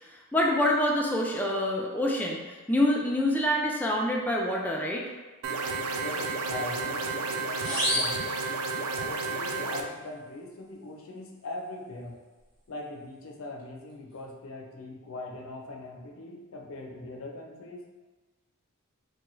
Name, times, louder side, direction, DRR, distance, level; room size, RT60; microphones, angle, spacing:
voice 1, 0.3-5.0, left 1 dB, 10° left, -2 dB, 0.3 m, -26 dB
sound 1, 5.4-9.8, right 3 dB, 75° right, 0.3 m, -31 dB
voice 2, 6.0-8.1 9.0-12.2 12.7-17.9, left 2 dB, 70° left, 0 dB, 0.5 m, -41 dB
sound 2, 7.6-9.1, left 1 dB, 20° right, 1.0 m, -31 dB
3.2 x 2.3 x 3.0 m, 1.3 s
head